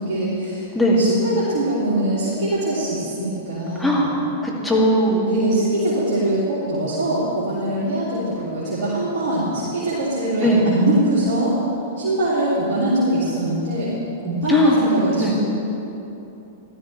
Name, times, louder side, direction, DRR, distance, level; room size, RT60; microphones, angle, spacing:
voice 1, 0.0-0.7 1.0-4.2 5.2-11.6 12.0-13.9 14.2-15.4, right 1 dB, 55° right, -10 dB, 3.1 m, -22 dB
voice 2, 3.8-4.1 4.4-5.3 10.4-10.6 14.5-14.8 15.2-15.3, equal, 5° left, -5 dB, 2.6 m, -18 dB
15.0 x 12.5 x 3.4 m, 3.0 s
figure-of-eight pair, 100°, 0 cm